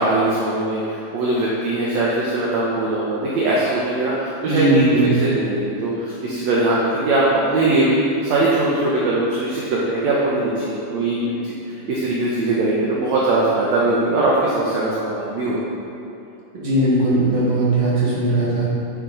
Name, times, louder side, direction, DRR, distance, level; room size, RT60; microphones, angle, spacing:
voice 1, 0.0-4.9 5.2-7.2 7.5-8.0 8.2-11.5 11.9-15.6, right 2 dB, 65° right, -5 dB, 2.0 m, -21 dB
voice 2, 4.5-5.1 16.6-18.7, right 2 dB, 40° right, -7 dB, 2.5 m, -18 dB
9.7 x 6.7 x 3.9 m, 2.8 s
omnidirectional pair, 3.7 m